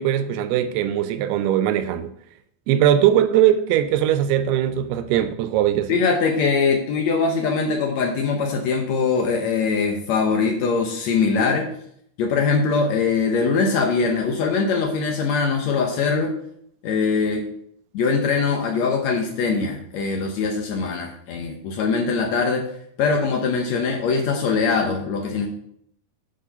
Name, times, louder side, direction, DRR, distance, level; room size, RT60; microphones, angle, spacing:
voice 1, 0.0-2.1 2.7-6.0, right 11 dB, 90° right, 2.6 m, -20 dB
voice 2, 5.9-11.7 12.2-16.3 16.8-17.4 17.9-22.6 23.0-25.5, left 4 dB, 90° left, 1.5 m, -22 dB
8.7 x 5.1 x 5.5 m
omnidirectional pair, 4.5 m